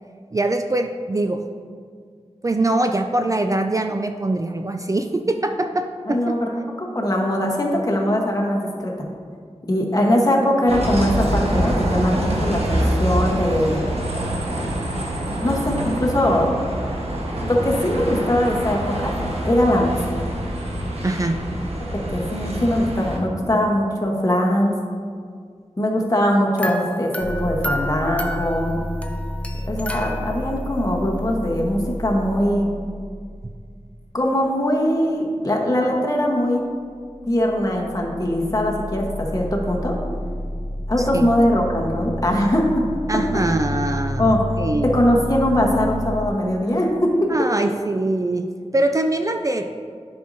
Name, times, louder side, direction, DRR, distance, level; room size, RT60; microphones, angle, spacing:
voice 1, 0.3-1.4 2.4-6.4 21.0-21.4 41.0-41.3 43.1-45.0 47.3-48.5 48.7-49.7, right 2 dB, 30° right, 5 dB, 0.3 m, -23 dB
voice 2, 6.1-6.5 6.8-8.9 9.7-13.8 15.4-16.5 17.4-19.1 19.4-20.0 21.9-24.7 25.8-28.8 29.7-32.7 34.1-36.6 37.3-40.0 40.9-42.8 43.1-43.2 44.2-44.4 44.8-47.3, left 1 dB, 30° left, -1 dB, 1.2 m, -21 dB
Bus, 10.7-23.2, right 1 dB, 65° right, 1.2 m, -25 dB
sound 1, 26.6-30.7, equal, 10° left, 0.6 m, -31 dB
sound 2, 27.2-34.5 37.0-46.3, left 1 dB, 75° left, 0.5 m, -30 dB
10.0 x 5.3 x 2.7 m, 2.1 s
wide cardioid pair, 65°, 11 cm